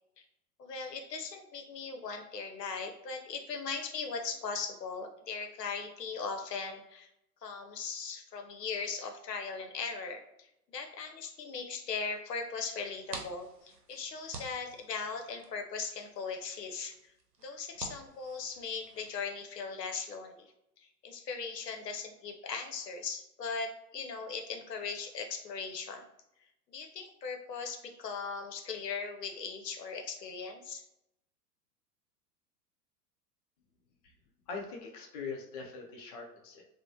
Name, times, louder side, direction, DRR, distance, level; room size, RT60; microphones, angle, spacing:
voice 1, 0.6-7.1 7.4-16.9 17.4-20.5 20.8-26.0 26.7-30.8, left 5 dB, 85° left, 4 dB, 0.6 m, -39 dB
sound 1, 12.8-19.1, right 3 dB, 80° right, 0.8 m, -49 dB
voice 2, 34.5-36.6, left 4 dB, 30° left, 0 dB, 0.3 m, -42 dB
2.9 x 2.0 x 2.5 m, 0.82 s
figure-of-eight pair, 100°, 48 cm